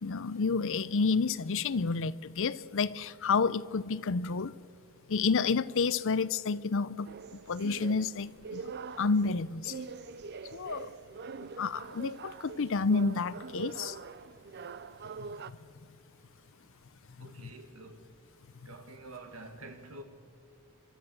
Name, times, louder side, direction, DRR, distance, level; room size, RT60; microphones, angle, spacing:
voice 1, 0.0-4.5 5.1-8.7 9.0-9.8 10.5-10.9 11.6-14.0 15.2-15.6 17.2-17.5, left 4 dB, 60° left, 0.6 m, -30 dB
sound 1, 7.0-15.5, right 4 dB, 50° right, 0.5 m, -44 dB
voice 2, 17.2-18.2 18.7-20.0, right 2 dB, 65° right, 1.9 m, -48 dB
30.0 x 12.5 x 7.7 m
head